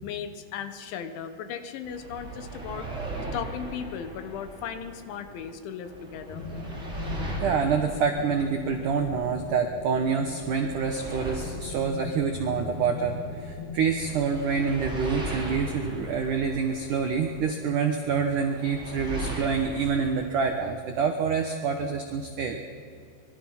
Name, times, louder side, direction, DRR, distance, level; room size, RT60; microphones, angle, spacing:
voice 1, 0.0-2.9 3.3-6.4, left 7 dB, 75° left, 8 dB, 3.7 m, -36 dB
sound 1, 1.8-5.5 5.8-9.5 9.9-13.5 14.0-17.5 18.0-20.5, right 2 dB, 15° right, 3.1 m, -38 dB
sound 2, 6.3-14.2, left 3 dB, 55° left, 3.0 m, -39 dB
voice 2, 7.4-22.6, right 5 dB, 80° right, 5 dB, 1.8 m, -27 dB
24.5 x 23.0 x 5.9 m, 2.4 s
omnidirectional pair, 5.6 m